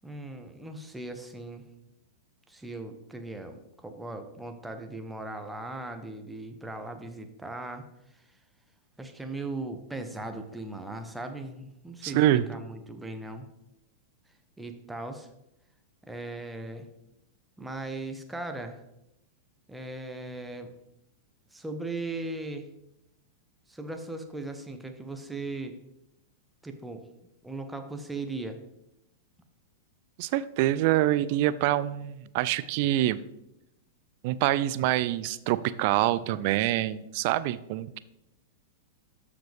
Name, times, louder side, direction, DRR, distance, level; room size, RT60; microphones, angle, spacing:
voice 1, 0.0-1.6 2.5-7.9 9.0-13.5 14.6-15.3 16.1-16.9 17.6-18.8 19.7-20.7 21.5-22.7 23.7-25.8 26.6-27.1 27.4-28.6, right 2 dB, 5° right, 6 dB, 1.0 m, -38 dB
voice 2, 12.0-12.5 30.2-33.2 34.2-38.0, right 14 dB, 50° right, 16 dB, 0.4 m, -25 dB
13.0 x 5.1 x 3.5 m, 0.84 s
figure-of-eight pair, 95°, 0 cm